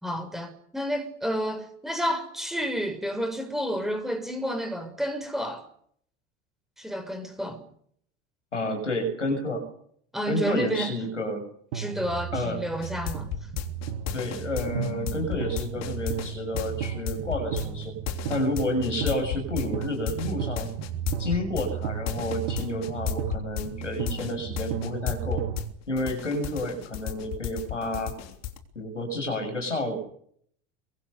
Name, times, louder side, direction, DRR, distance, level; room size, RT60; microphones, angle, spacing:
voice 1, 0.0-5.7 6.8-7.6 10.1-10.9 11.7-13.3, equal, ahead, 6.2 m, -30 dB
voice 2, 8.5-9.7 10.3-11.5 12.3-12.6 14.1-18.0 18.3-20.7 21.2-25.5 25.9-28.2 28.8-30.0, left 1 dB, 85° left, 7.1 m, -30 dB
sound 1, 11.7-25.7, right 8 dB, 60° right, 2.1 m, -34 dB
sound 2, 12.8-25.7 26.0-28.6, left 12 dB, 50° left, 3.4 m, -33 dB
27.5 x 24.0 x 6.8 m
figure-of-eight pair, 70°, 35 cm